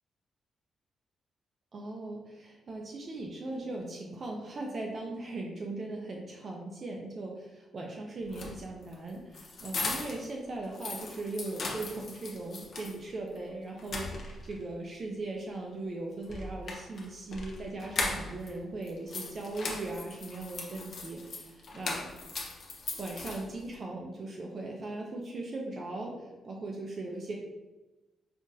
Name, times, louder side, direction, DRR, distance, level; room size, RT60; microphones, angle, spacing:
voice 1, 1.7-22.0 23.0-26.2 26.4-27.3, right 2 dB, 40° right, 0 dB, 0.5 m, -39 dB
sound 1, 8.2-10.3 10.6-13.0 13.4-13.5 13.8-14.6 16.2-18.5 18.8-23.7, left 3 dB, 45° left, 0.6 m, -38 dB
5.5 x 2.4 x 2.7 m, 1.1 s
wide cardioid pair, 160°, 0 cm